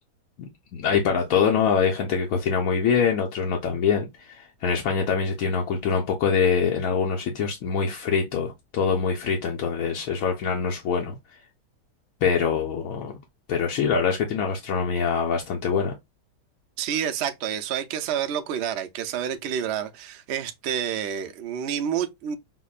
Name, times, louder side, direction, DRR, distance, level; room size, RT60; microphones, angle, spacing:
voice 1, 0.4-11.1 12.2-13.2 13.5-15.9, left 6 dB, 65° left, 1.0 m, -24 dB
voice 2, 16.8-22.4, right 9 dB, 80° right, 0.5 m, -29 dB
5.7 x 2.1 x 2.3 m
omnidirectional pair, 1.8 m